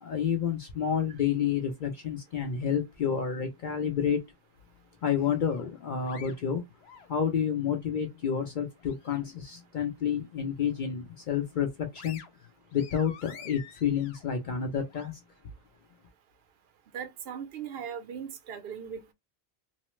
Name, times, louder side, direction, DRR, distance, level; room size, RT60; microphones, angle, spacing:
voice 1, 0.0-4.2 5.0-6.6 7.1-12.2 12.7-15.2, left 8 dB, 60° left, 0.6 m, -29 dB
sound 1, 5.5-7.5 8.0-9.4 9.8-10.0 10.4-11.2 11.6-15.1, left 8 dB, 90° left, 0.8 m, -50 dB
voice 2, 16.9-19.1, right 8 dB, 75° right, 0.8 m, -39 dB
3.0 x 2.0 x 3.0 m
omnidirectional pair, 1.0 m